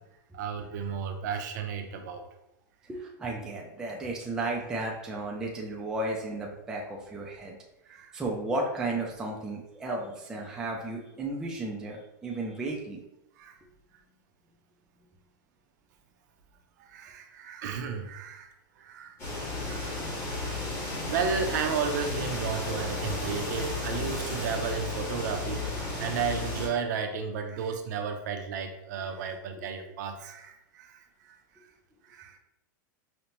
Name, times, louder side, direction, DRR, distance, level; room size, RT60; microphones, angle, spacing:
voice 1, 0.3-2.3 7.9-8.1 13.4-13.6 16.8-19.2 19.6-20.0 20.2-20.6 21.1-31.4 32.1-32.4, right 6 dB, 55° right, 5 dB, 0.5 m, -33 dB
voice 2, 2.9-7.6 8.1-13.0, right 2 dB, 5° right, -2 dB, 0.3 m, -34 dB
sound 1, 19.2-26.7, left 2 dB, 20° left, 1.0 m, -33 dB
5.2 x 2.1 x 2.9 m, 0.87 s
supercardioid pair, 165°, 11 cm